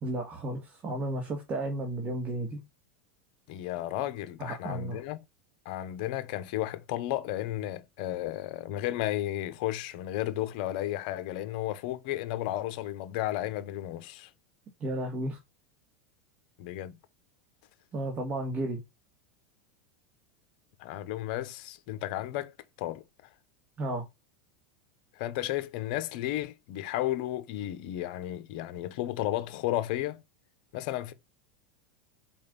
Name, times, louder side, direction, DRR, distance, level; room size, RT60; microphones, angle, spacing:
voice 1, 0.0-2.6 4.4-5.0 14.8-15.4 17.9-18.8 23.8-24.0, right 1 dB, 25° right, 1.8 m, -33 dB
voice 2, 3.5-5.2 5.6-14.3 16.6-17.0 20.8-23.0 25.2-30.2 30.7-31.1, left 14 dB, 60° left, 1.0 m, -33 dB
4.8 x 3.8 x 5.3 m
supercardioid pair, 145°, 6 cm